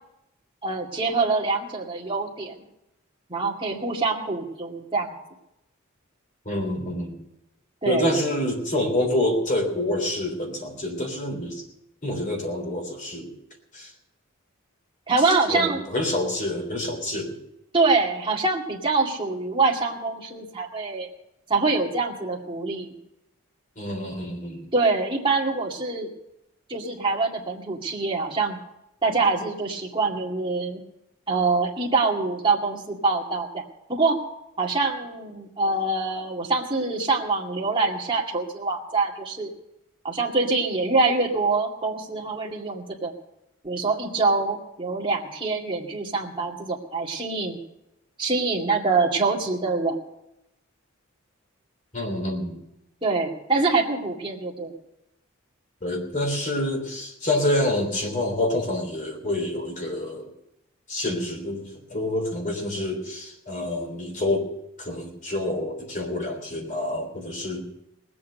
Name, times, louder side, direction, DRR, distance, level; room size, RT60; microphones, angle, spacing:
voice 1, 0.6-2.5 3.3-5.1 7.8-8.0 15.1-15.8 17.7-21.1 21.5-23.0 24.7-26.1 26.7-28.6 29.0-30.8 31.3-33.6 33.9-34.2 34.6-39.5 40.0-43.1 43.6-47.6 48.2-50.0 53.0-54.7, right 3 dB, 25° right, -1 dB, 2.3 m, -25 dB
voice 2, 6.4-7.2 7.8-11.6 12.0-13.3 13.7-13.9 15.5-17.4 23.8-24.7 51.9-52.6 55.8-60.3 60.9-64.5 64.8-67.6, left 1 dB, 35° left, 2 dB, 3.4 m, -27 dB
19.5 x 8.6 x 6.7 m, 0.86 s
head